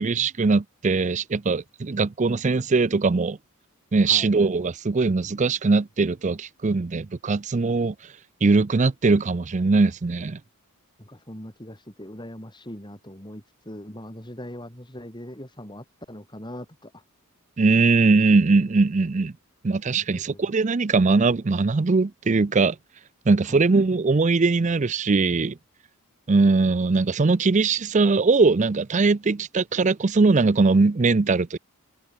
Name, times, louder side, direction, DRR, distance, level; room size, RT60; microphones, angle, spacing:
voice 1, 0.0-3.4 3.9-7.9 8.4-10.4 17.6-19.3 19.6-22.8 23.3-25.6 26.3-31.6, right 3 dB, 35° right, 0.5 m, -21 dB
voice 2, 11.0-17.0 20.1-20.5 23.4-23.6, left 1 dB, 20° left, 6.6 m, -41 dB
head